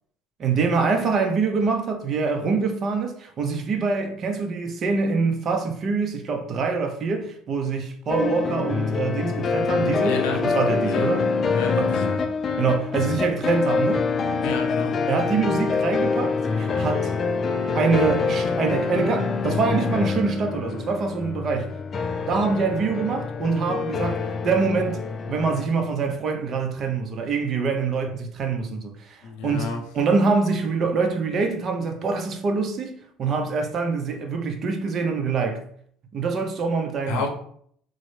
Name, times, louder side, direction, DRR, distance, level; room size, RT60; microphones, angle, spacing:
voice 1, 0.4-11.2 11.8-11.9 12.6-14.1 15.1-17.1 17.7-21.7 22.3-25.0 25.3-35.6 36.1-37.2, right 4 dB, 45° right, 0.6 m, -25 dB
sound 1, 8.1-25.7, left 4 dB, 40° left, 0.3 m, -25 dB
voice 2, 10.0-10.4 10.8-11.1 11.5-12.1 14.4-14.9 29.2-29.8 37.1-37.3, left 4 dB, 85° left, 0.7 m, -30 dB
3.8 x 2.0 x 3.1 m
supercardioid pair, 100°, 0 cm